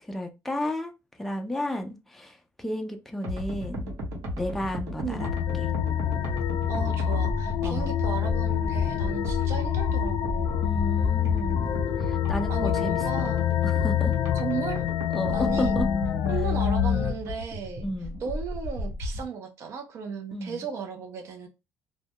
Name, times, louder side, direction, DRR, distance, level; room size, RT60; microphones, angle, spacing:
voice 1, 0.0-0.9 1.2-3.9 4.3-5.3 5.6-5.7 7.6-7.9 10.6-11.7 12.0-13.4 13.6-14.1 15.1-15.9 17.8-18.2 20.3-20.6, left 1 dB, 5° left, 0.4 m, -33 dB
sound 1, 3.2-19.3, equal, 75° right, 0.9 m, -34 dB
sound 2, 5.2-17.1, left 10 dB, 65° left, 0.4 m, -26 dB
voice 2, 6.7-10.7 12.5-13.6 14.3-14.8 15.3-15.8 16.3-17.9 18.2-21.5, right 6 dB, 50° right, 0.5 m, -35 dB
2.2 x 2.1 x 2.8 m
cardioid pair, 165°, 6 cm